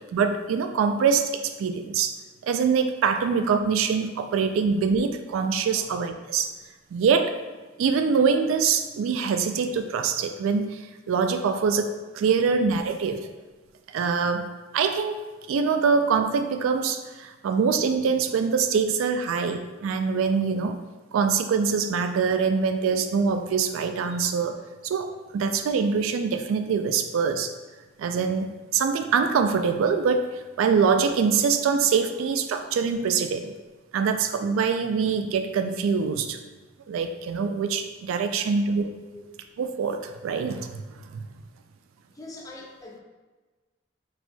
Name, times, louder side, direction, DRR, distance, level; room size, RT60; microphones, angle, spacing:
voice 1, 0.1-2.1 2.4-6.5 6.9-7.3 7.8-10.8 11.1-13.2 13.9-15.2 15.5-20.8 21.1-24.6 24.8-27.5 28.0-28.5 28.7-33.5 33.9-36.4 36.9-38.9 39.6-40.8 41.1-41.3, right 5 dB, 90° right, 7 dB, 0.3 m, -24 dB
voice 2, 42.1-43.0, left 2 dB, 15° left, -2 dB, 0.5 m, -43 dB
4.4 x 4.2 x 2.2 m, 1.3 s
head